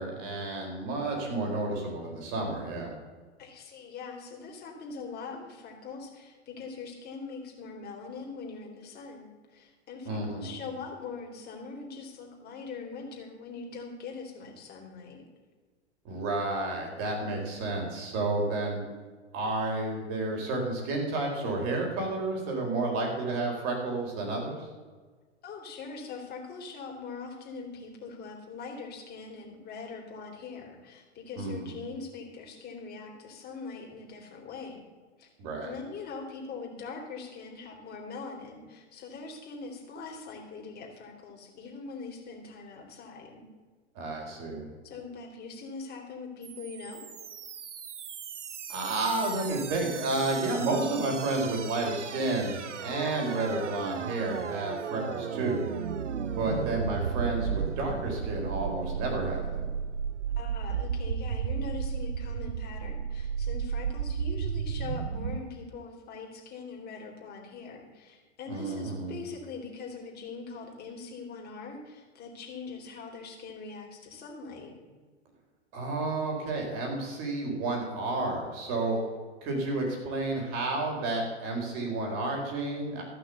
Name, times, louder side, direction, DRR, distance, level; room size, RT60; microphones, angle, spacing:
voice 1, 0.0-2.9 10.0-10.5 16.0-18.8 19.3-24.7 31.4-31.7 35.4-35.7 43.9-44.7 48.7-55.6 56.4-59.7 68.5-69.1 75.7-79.0 79.4-83.0, right 2 dB, 40° right, 0 dB, 4.4 m, -31 dB
voice 2, 3.4-15.2 25.4-34.8 35.2-35.3 35.6-43.5 44.9-47.1 60.4-74.7, left 4 dB, 25° left, 1 dB, 3.0 m, -42 dB
sound 1, 46.4-65.4, right 7 dB, 80° right, 0.8 m, -34 dB
14.0 x 6.1 x 8.2 m, 1.4 s
figure-of-eight pair, 105°, 35 cm